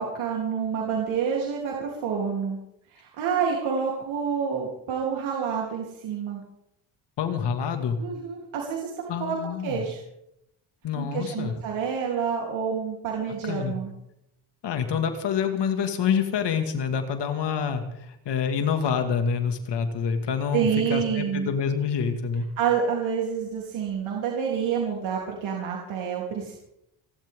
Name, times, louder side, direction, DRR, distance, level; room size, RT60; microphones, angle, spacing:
voice 1, 0.0-2.6 2.9-6.4 8.0-9.4 9.6-10.0 11.0-13.9 20.5-21.5 22.6-26.6, right 7 dB, 85° right, -2 dB, 3.6 m, -28 dB
voice 2, 7.2-8.0 9.1-9.8 10.8-11.5 13.5-13.7 14.6-22.5, left 7 dB, 60° left, 6 dB, 2.3 m, -27 dB
29.5 x 12.0 x 3.8 m, 0.80 s
cardioid pair, 135°, 46 cm